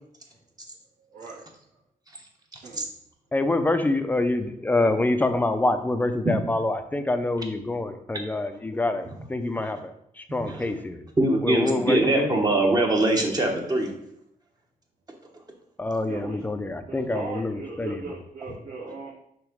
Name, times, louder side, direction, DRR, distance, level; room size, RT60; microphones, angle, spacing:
voice 1, 1.1-1.4 2.6-2.8 16.1-16.4 16.9-19.1, right 4 dB, 80° right, -9 dB, 1.7 m, -38 dB
voice 2, 3.3-11.0 11.4-12.3 15.8-18.1, left 2 dB, 10° left, 8 dB, 0.5 m, -26 dB
voice 3, 10.3-10.7 11.2-13.9, right 1 dB, 25° right, 1 dB, 1.0 m, -23 dB
6.3 x 3.0 x 5.0 m, 0.74 s
wide cardioid pair, 130°, 15 cm